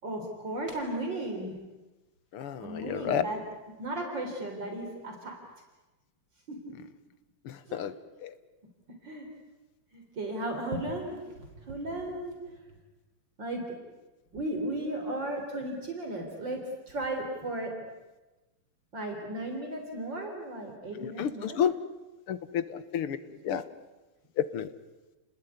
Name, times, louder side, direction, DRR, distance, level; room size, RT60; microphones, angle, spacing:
voice 1, 0.0-1.6 2.6-3.4 3.8-5.4 6.5-6.7 7.7-7.8 8.9-9.3 9.9-12.4 13.4-13.8 14.3-17.7 18.9-21.6, right 1 dB, 55° right, 3 dB, 4.3 m, -35 dB
voice 2, 2.3-3.2 7.5-7.9 8.2-8.3 21.0-21.7 22.3-23.2 23.5-23.6 24.4-24.7, left 9 dB, 85° left, 13 dB, 2.2 m, -30 dB
30.0 x 20.0 x 9.5 m, 1.1 s
omnidirectional pair, 2.4 m